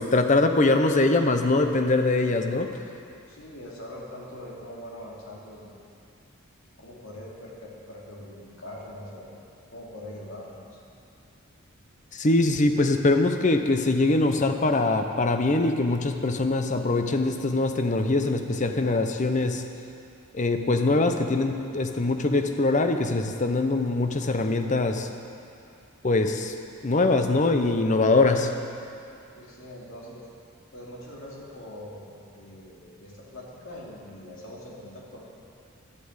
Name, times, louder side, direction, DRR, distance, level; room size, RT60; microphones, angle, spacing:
voice 1, 0.0-2.7 12.1-19.6 20.3-25.1 26.0-26.5 26.8-28.5, left 2 dB, 35° left, 6 dB, 0.7 m, -23 dB
voice 2, 3.2-5.8 6.8-9.3 9.7-10.8 29.3-30.2 30.7-32.0 32.3-35.2, left 1 dB, 70° left, -4 dB, 2.7 m, -42 dB
11.5 x 8.4 x 8.0 m, 2.6 s
head